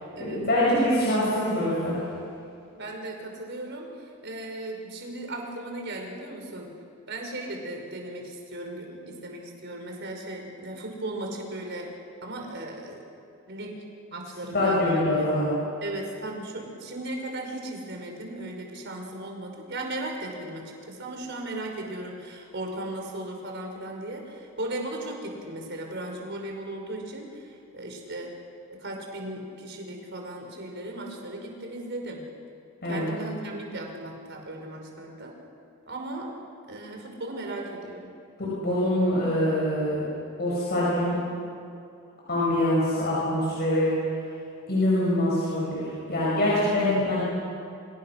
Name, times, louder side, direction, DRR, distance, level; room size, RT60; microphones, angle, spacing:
voice 1, 0.2-2.0 14.5-15.5 32.8-33.1 38.4-40.0 40.4-41.2 42.3-43.9 44.7-47.2, left 1 dB, 45° left, -6 dB, 7.8 m, -24 dB
voice 2, 2.8-6.7 7.1-11.9 12.2-13.0 13.5-13.8 14.1-15.3 15.8-28.3 28.7-32.2 32.9-35.4 35.9-36.3 36.7-38.1, right 1 dB, 55° right, 2 dB, 5.4 m, -36 dB
29.5 x 27.0 x 6.6 m, 2.6 s
head